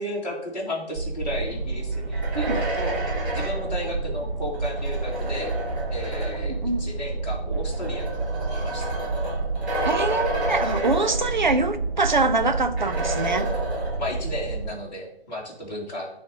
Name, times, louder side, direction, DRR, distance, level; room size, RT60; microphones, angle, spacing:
voice 1, 0.0-3.0 3.3-5.5 5.9-8.2 8.5-9.0 14.0-16.1, left 1 dB, 40° left, 1.5 m, -34 dB
sound 1, 0.9-14.7, right 3 dB, 25° right, 2.4 m, -29 dB
sound 2, 1.9-6.6 7.5-11.7 12.0-12.1 12.8-14.3, right 1 dB, 5° right, 1.5 m, -31 dB
voice 2, 6.5-6.9 9.8-13.5, right 3 dB, 45° right, 0.5 m, -24 dB
10.0 x 3.4 x 3.9 m
figure-of-eight pair, 160°, 33 cm